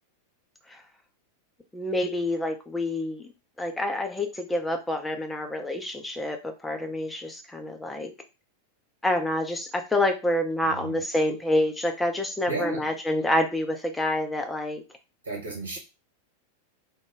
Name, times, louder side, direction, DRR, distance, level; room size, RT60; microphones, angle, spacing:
voice 1, 1.7-3.3 3.6-8.1 9.0-14.8, left 1 dB, 10° left, 5 dB, 0.5 m, -27 dB
voice 2, 10.6-11.0 12.5-12.9 15.2-15.8, right 3 dB, 70° right, -1 dB, 1.1 m, -33 dB
2.2 x 2.0 x 3.2 m, 0.28 s
figure-of-eight pair, 90°, 0 cm